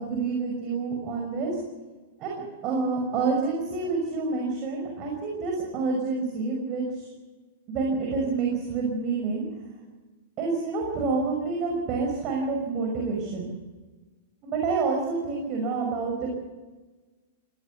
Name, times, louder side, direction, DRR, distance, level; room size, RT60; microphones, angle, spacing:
voice 1, 0.0-1.6 2.2-7.1 7.7-9.4 10.4-13.5 14.4-16.3, right 4 dB, 35° right, 0 dB, 5.9 m, -28 dB
19.5 x 17.5 x 8.4 m, 1.3 s
figure-of-eight pair, 100°, 0 cm